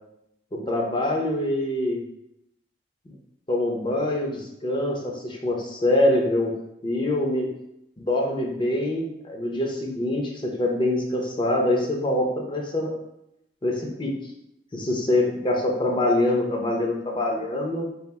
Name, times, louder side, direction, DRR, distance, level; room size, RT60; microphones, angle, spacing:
voice 1, 0.5-2.0 3.5-6.5 6.8-7.5 8.0-12.9 13.6-14.1 14.7-17.9, left 1 dB, 30° left, 0 dB, 0.7 m, -24 dB
3.5 x 2.5 x 4.0 m, 0.81 s
head